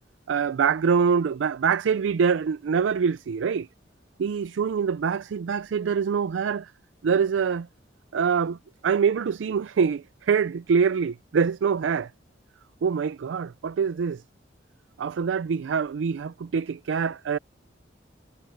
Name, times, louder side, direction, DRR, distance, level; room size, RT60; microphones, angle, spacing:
voice 1, 0.3-3.7 4.2-6.7 7.0-7.7 8.1-12.1 12.8-14.2 15.0-17.4, right 6 dB, 80° right, 0.4 m, -25 dB
head